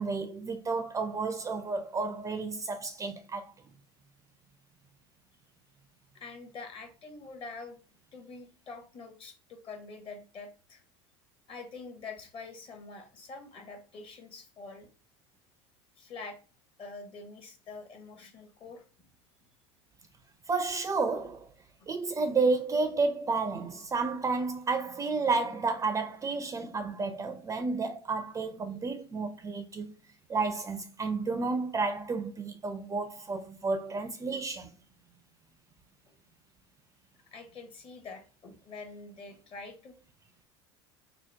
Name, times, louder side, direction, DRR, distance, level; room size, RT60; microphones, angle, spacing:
voice 1, 0.0-3.5 20.5-21.5 21.9-29.9 30.3-34.7, right 4 dB, 20° right, 0.4 m, -31 dB
voice 2, 6.1-7.8 8.1-10.8 11.5-14.9 16.0-16.4 16.8-19.1 36.1-36.2 37.3-39.9, left 4 dB, 40° left, 0.9 m, -45 dB
2.8 x 2.0 x 3.2 m
hypercardioid pair, 80°, 14 cm